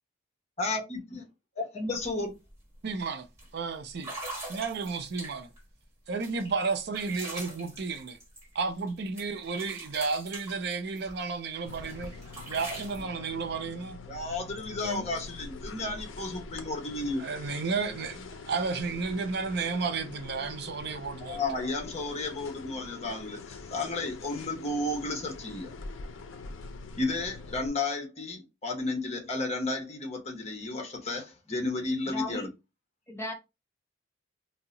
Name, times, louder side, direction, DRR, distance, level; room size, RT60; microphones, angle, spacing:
voice 1, 0.6-1.2 1.6-2.3 14.1-17.2 21.2-25.7 27.0-32.5, left 2 dB, 35° left, 0.8 m, -33 dB
sound 1, 2.0-2.1 2.5-2.8 3.4-3.5 4.0-5.6 6.2-8.9 9.2-11.3 11.7-13.0, right 2 dB, 15° right, 1.4 m, -42 dB
voice 2, 2.8-3.3 3.5-4.1 4.5-5.5 6.1-8.2 8.5-12.1 12.5-14.0 17.2-21.4, right 4 dB, 55° right, 0.5 m, -32 dB
sound 2, 11.7-27.7, left 3 dB, 75° left, 0.5 m, -44 dB
voice 3, 32.1-32.5 33.1-33.3, left 3 dB, 15° left, 0.4 m, -35 dB
2.7 x 2.0 x 3.8 m
head